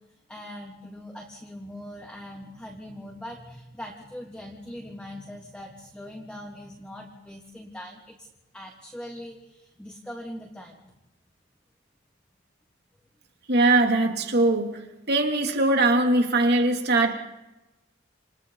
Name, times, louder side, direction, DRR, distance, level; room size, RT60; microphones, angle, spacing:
voice 1, 0.3-8.3 8.5-10.9, left 1 dB, 5° left, -1 dB, 3.1 m, -41 dB
voice 2, 13.5-14.8 15.1-17.1, right 2 dB, 55° right, 3 dB, 3.0 m, -21 dB
29.5 x 29.0 x 4.1 m, 1.0 s
head